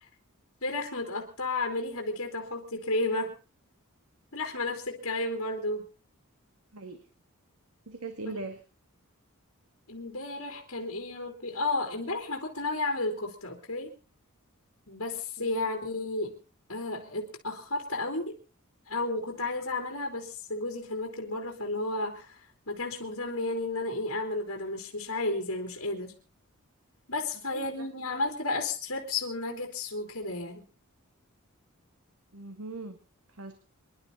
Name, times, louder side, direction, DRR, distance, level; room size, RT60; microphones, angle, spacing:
voice 1, 0.6-3.3 4.3-5.8 9.9-13.9 14.9-16.4 16.7-18.4 18.9-26.1 27.1-30.6, left 2 dB, 65° left, 2 dB, 3.6 m, -32 dB
voice 2, 7.9-8.6 27.5-27.9 32.3-33.0 33.4-33.5, right 3 dB, 85° right, 7 dB, 2.0 m, -39 dB
26.5 x 11.5 x 4.1 m, 0.35 s
head